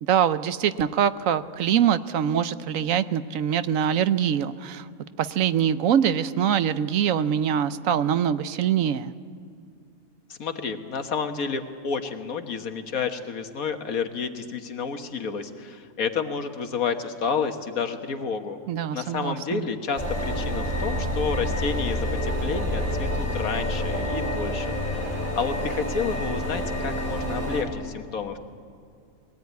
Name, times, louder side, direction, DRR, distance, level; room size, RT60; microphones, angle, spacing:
voice 1, 0.0-4.9 5.2-9.1 18.7-19.7, right 9 dB, 75° right, 13 dB, 1.1 m, -24 dB
voice 2, 10.3-18.6 18.9-28.4, left 5 dB, 85° left, 7 dB, 1.8 m, -30 dB
sound 1, 20.0-27.6, left 1 dB, 25° right, 4.3 m, -28 dB
22.0 x 17.5 x 9.4 m, 2.4 s
omnidirectional pair, 1.4 m